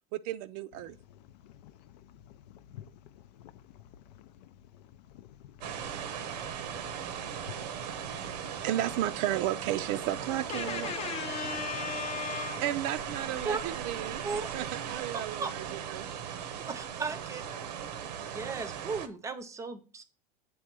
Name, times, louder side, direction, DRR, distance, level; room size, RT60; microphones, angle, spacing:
voice 1, 0.1-1.0 8.6-10.9 12.6-14.2 14.5-16.1, right 13 dB, 50° right, 0.4 m, -33 dB
sound 1, 0.7-13.5, left 10 dB, 80° left, 0.5 m, -53 dB
sound 2, 5.6-19.1, right 8 dB, 90° right, 0.9 m, -38 dB
voice 2, 10.5-12.6, left 7 dB, 30° left, 0.5 m, -36 dB
voice 3, 15.1-15.5 16.7-17.5 18.2-20.0, right 4 dB, 15° right, 0.6 m, -36 dB
7.7 x 3.6 x 5.9 m
supercardioid pair, 150°, 20 cm